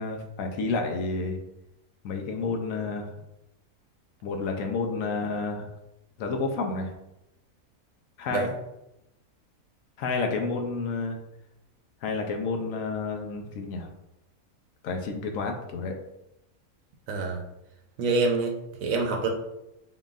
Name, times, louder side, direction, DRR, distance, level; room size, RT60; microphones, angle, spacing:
voice 1, 0.0-1.4 2.0-3.1 4.2-5.7 6.2-6.9 8.2-8.5 10.0-11.2 12.0-13.9 14.8-16.0, left 3 dB, 70° left, 3 dB, 0.9 m, -30 dB
voice 2, 17.1-17.4 18.0-18.5 18.8-19.3, right 3 dB, 70° right, 3 dB, 1.0 m, -26 dB
3.8 x 3.8 x 2.4 m, 0.89 s
omnidirectional pair, 1.5 m